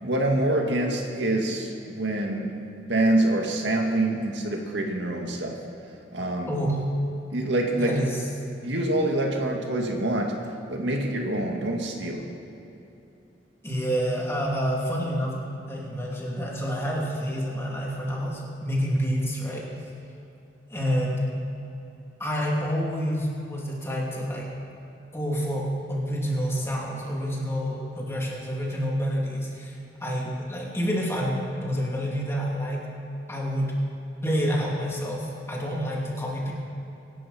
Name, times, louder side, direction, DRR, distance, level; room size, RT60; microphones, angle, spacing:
voice 1, 0.0-5.6 6.1-6.5 7.3-8.0 8.6-10.3 10.7-12.3, right 1 dB, 80° right, 1 dB, 2.0 m, -26 dB
voice 2, 7.8-8.2 13.6-15.4 15.7-19.7 20.7-21.2 22.2-24.4 25.1-29.7 30.0-32.9 33.3-33.8 34.2-36.5, equal, 15° left, -3 dB, 2.9 m, -28 dB
24.5 x 12.0 x 4.4 m, 3.0 s
head